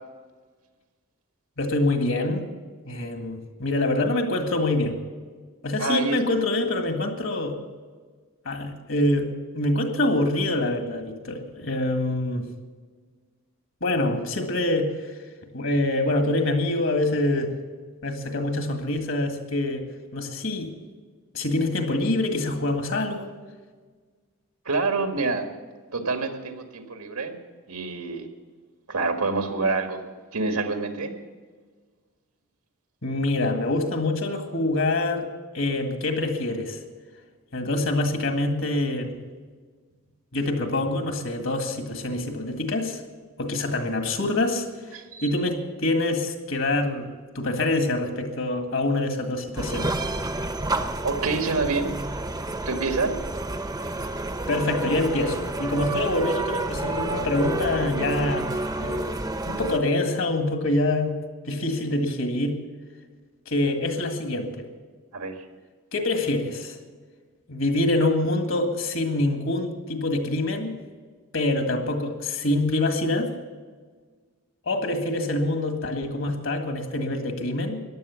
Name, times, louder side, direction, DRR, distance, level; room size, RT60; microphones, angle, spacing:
voice 1, 1.6-2.5 2.9-5.0 5.6-7.6 8.5-12.5 13.8-15.1 15.5-17.6 18.0-19.9 20.1-20.7 21.3-23.3 33.0-35.3 35.5-36.8 37.5-39.2 40.3-43.0 43.4-47.1 47.4-49.9 54.5-58.5 58.8-59.1 59.5-61.2 61.5-62.6 63.5-64.7 65.9-66.8 67.5-70.8 71.3-73.3 74.7-77.8, left 2 dB, 60° left, 5 dB, 1.9 m, -25 dB
voice 2, 5.8-6.2 24.7-25.5 25.9-27.4 27.7-28.3 28.9-30.0 30.3-31.1 44.9-45.3 51.0-52.0 52.6-53.2 65.1-65.4, right 3 dB, 90° right, 5 dB, 1.9 m, -27 dB
sound 1, 49.6-59.8, right 2 dB, 15° right, 0.7 m, -30 dB
14.5 x 11.0 x 7.1 m, 1.5 s
head